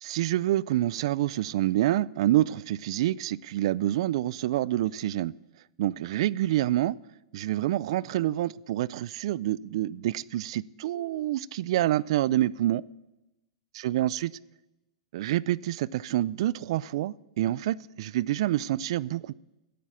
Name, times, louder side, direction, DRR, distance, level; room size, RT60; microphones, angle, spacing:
voice 1, 0.0-5.3 5.8-7.0 7.3-12.8 13.8-14.3 15.1-19.3, right 14 dB, 65° right, 22 dB, 0.3 m, -27 dB
10.0 x 8.4 x 7.5 m, 0.99 s
hypercardioid pair, 140°, 3 cm